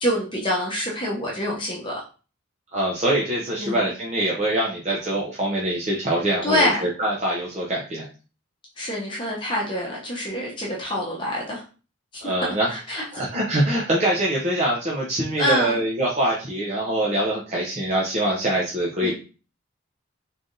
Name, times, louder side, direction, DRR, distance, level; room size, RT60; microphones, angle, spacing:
voice 1, 0.0-2.0 3.6-3.9 6.4-6.9 8.8-11.6 12.7-13.0 15.4-15.8 19.0-19.1, equal, 25° left, -3 dB, 0.9 m, -26 dB
voice 2, 2.7-8.1 12.2-19.1, right 1 dB, 35° right, -4 dB, 0.7 m, -24 dB
3.8 x 3.3 x 2.6 m, 0.35 s
head